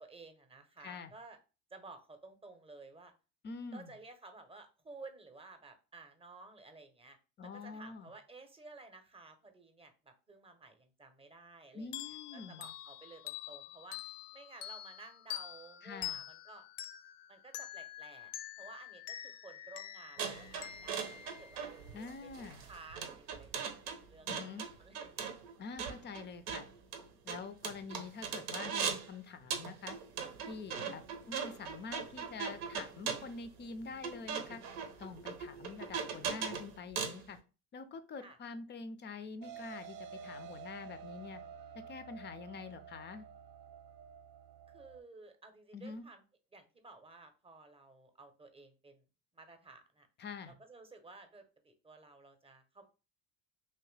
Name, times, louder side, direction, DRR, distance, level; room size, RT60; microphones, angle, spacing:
voice 1, 0.0-1.4 1.7-3.1 3.7-16.6 17.3-18.3 18.6-25.3 38.2-38.4 42.2-42.3 44.7-46.2 46.5-49.0 49.3-50.1 50.5-52.9, right 3 dB, 15° right, 7 dB, 0.7 m, -54 dB
voice 2, 0.8-1.1 3.4-3.9 7.4-8.1 11.7-12.7 15.8-16.2 21.9-22.7 24.3-24.7 25.6-26.7 27.2-30.0 30.4-34.6 35.0-37.4 37.7-41.4 41.7-43.3 45.7-46.1 50.2-50.5, left 4 dB, 25° left, 11 dB, 0.4 m, -46 dB
sound 1, 11.9-22.2, left 13 dB, 80° left, 0.5 m, -46 dB
sound 2, 20.2-29.1 29.5-37.2, right 6 dB, 80° right, 0.9 m, -40 dB
sound 3, 39.4-45.0, right 6 dB, 65° right, 0.6 m, -50 dB
3.0 x 2.8 x 3.2 m, 0.33 s
hypercardioid pair, 80°, 45 cm